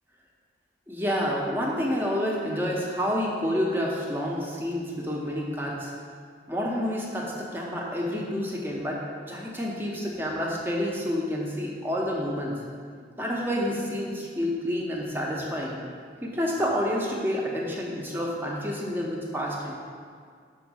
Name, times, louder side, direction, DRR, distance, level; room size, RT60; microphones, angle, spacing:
voice 1, 0.9-5.9 6.5-12.6 13.2-15.8 16.2-19.7, equal, 10° right, -2 dB, 1.0 m, -29 dB
6.3 x 4.5 x 6.3 m, 2.1 s
head